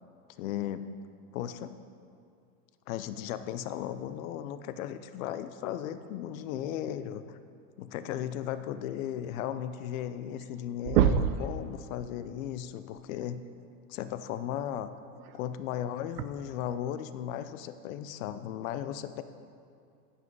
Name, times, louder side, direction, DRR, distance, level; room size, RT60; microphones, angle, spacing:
voice 1, 0.4-0.9 1.3-1.7 2.9-7.4 7.8-13.4 13.9-14.9 15.3-19.2, left 10 dB, 60° left, 12 dB, 0.6 m, -36 dB
sound 1, 9.9-10.0 10.3-10.6 10.8-11.5 13.2-13.3 15.2-15.3 16.2-16.3, right 9 dB, 90° right, 0.6 m, -25 dB
9.7 x 5.5 x 5.4 m, 2.3 s
supercardioid pair, 150°, 46 cm